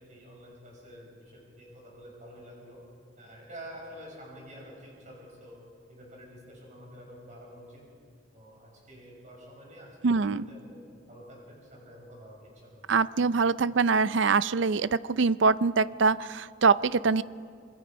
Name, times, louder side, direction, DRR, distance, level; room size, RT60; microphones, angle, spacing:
voice 1, 0.0-2.8 3.2-5.6 5.9-7.8 8.3-10.8 11.1-12.8, equal, 40° right, -2 dB, 6.3 m, -48 dB
voice 2, 10.0-10.4 12.9-17.2, right 4 dB, 70° right, 17 dB, 0.5 m, -24 dB
26.5 x 22.0 x 5.1 m, 2.3 s
head